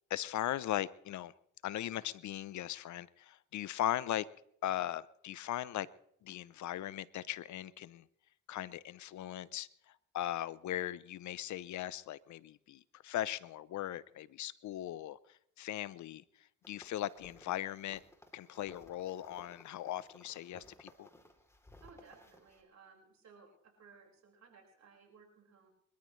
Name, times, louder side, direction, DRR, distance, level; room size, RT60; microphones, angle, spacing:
voice 1, 0.1-1.3 1.6-4.2 4.6-5.9 6.2-8.0 8.5-16.2 16.7-18.0 18.3-21.1, left 13 dB, 65° left, 19 dB, 0.7 m, -39 dB
sound 1, 16.6-22.6, left 1 dB, 10° left, 3.2 m, -59 dB
voice 2, 21.8-23.5 23.8-25.7, right 5 dB, 60° right, 0 dB, 5.3 m, -60 dB
25.0 x 13.5 x 3.2 m, 0.69 s
supercardioid pair, 60°, 32 cm